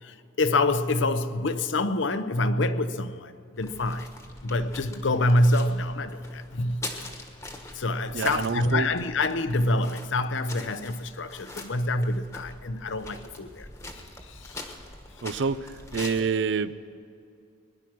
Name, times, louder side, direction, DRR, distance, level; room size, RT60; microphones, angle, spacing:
voice 1, 0.0-4.1 4.4-7.1 7.7-13.7 13.9-14.7 16.0-16.2, left 2 dB, 70° left, 0.7 m, -26 dB
sound 1, 3.6-16.2, left 2 dB, 15° left, 1.3 m, -43 dB
voice 2, 8.1-8.9 15.2-16.7, right 5 dB, 60° right, 0.5 m, -27 dB
21.0 x 11.0 x 6.0 m
head